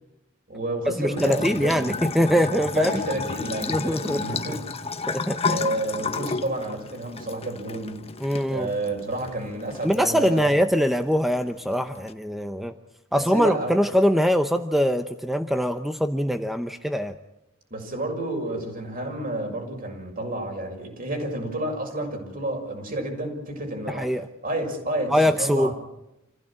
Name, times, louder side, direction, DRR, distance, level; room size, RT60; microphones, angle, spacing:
voice 1, 0.5-2.0 2.7-4.7 5.5-8.0 8.5-10.5 13.1-13.8 17.7-24.2 24.4-25.7, right 1 dB, 45° right, 3 dB, 6.6 m, -30 dB
voice 2, 1.0-2.9 3.7-4.4 5.1-5.6 8.2-8.7 9.8-12.7 13.1-17.2 23.9-24.3 25.1-25.7, equal, ahead, 7 dB, 0.8 m, -23 dB
Bathtub (filling or washing) / Trickle dribble, 1.2-12.1, left 4 dB, 30° left, 1.2 m, -33 dB
28.0 x 16.0 x 8.8 m, 0.91 s
head